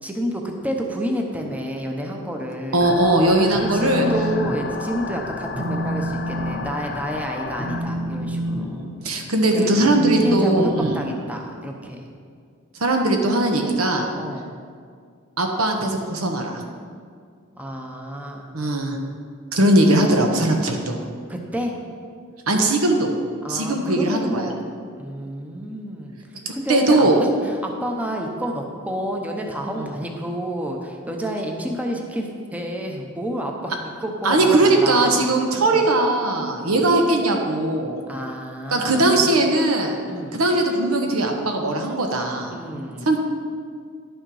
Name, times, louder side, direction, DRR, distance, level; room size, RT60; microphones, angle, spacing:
voice 1, 0.0-2.9 3.6-8.9 9.5-9.7 10.2-12.1 14.2-14.5 17.6-18.5 21.3-21.8 23.4-24.6 25.0-26.2 26.5-35.2 35.6-35.8 36.6-36.8 38.1-39.4 40.0-40.4 42.5-43.1, equal, 5° right, 1 dB, 0.8 m, -29 dB
voice 2, 2.7-4.0 8.6-11.0 12.8-14.1 15.4-16.6 18.5-19.0 19.5-21.0 22.5-23.1 23.5-24.5 26.4-27.2 29.8-29.9 34.2-38.0 38.7-40.0 40.3-42.5 43.0-43.2, right 2 dB, 85° right, 3 dB, 1.1 m, -19 dB
sound 1, 2.8-7.8, left 4 dB, 50° left, 0.6 m, -33 dB
Telephone, 3.5-4.6 4.9-5.2 5.5-11.6, right 1 dB, 30° right, 1.4 m, -29 dB
10.5 x 6.4 x 4.8 m, 2.1 s
head